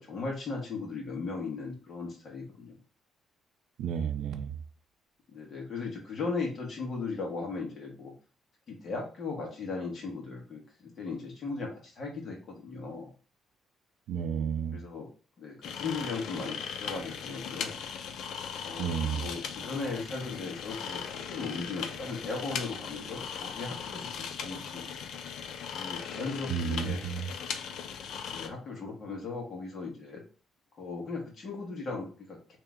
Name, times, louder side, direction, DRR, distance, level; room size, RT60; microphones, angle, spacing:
voice 1, 0.0-2.8 5.3-8.1 8.7-13.1 14.7-15.1 15.4-17.8 18.6-25.0 25.7-27.0 28.3-30.2 30.8-32.6, left 4 dB, 35° left, 1.3 m, -37 dB
voice 2, 3.8-4.5 14.1-14.8 18.8-19.2 26.5-27.3, right 7 dB, 75° right, 0.4 m, -31 dB
sound 1, 15.6-28.5, left 7 dB, 65° left, 0.4 m, -38 dB
3.3 x 2.9 x 3.6 m
cardioid pair, 170°, 0 cm